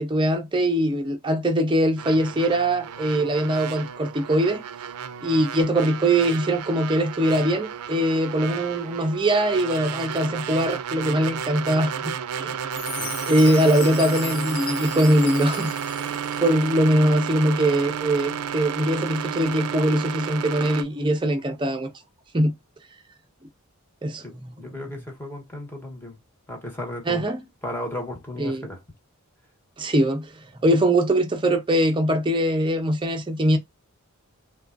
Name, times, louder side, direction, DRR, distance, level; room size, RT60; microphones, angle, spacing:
voice 1, 0.0-4.6 5.2-12.6 13.2-15.7 16.0-21.9 22.3-22.5 24.0-24.5 27.1-27.4 28.4-28.7 29.8-33.6, right 1 dB, 20° right, 0.6 m, -22 dB
sound 1, 2.0-20.8, right 8 dB, 85° right, 0.4 m, -32 dB
Chime, 12.7-16.7, left 5 dB, 75° left, 1.0 m, -36 dB
voice 2, 24.2-26.2 26.5-27.2 27.6-28.8, left 1 dB, 10° left, 1.0 m, -35 dB
3.5 x 2.3 x 2.4 m
head